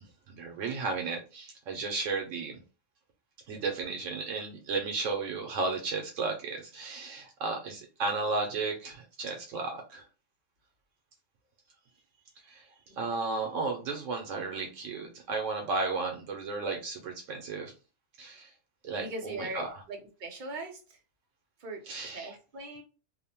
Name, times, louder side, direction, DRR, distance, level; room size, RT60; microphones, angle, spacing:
voice 1, 0.3-2.6 3.5-10.0 12.5-12.6 13.0-17.7 18.2-18.5 18.8-19.8 21.9-22.4, right 4 dB, 85° right, 1.0 m, -34 dB
voice 2, 19.0-20.8 21.6-22.8, right 2 dB, 50° right, 0.7 m, -40 dB
2.9 x 2.1 x 2.7 m
omnidirectional pair, 1.3 m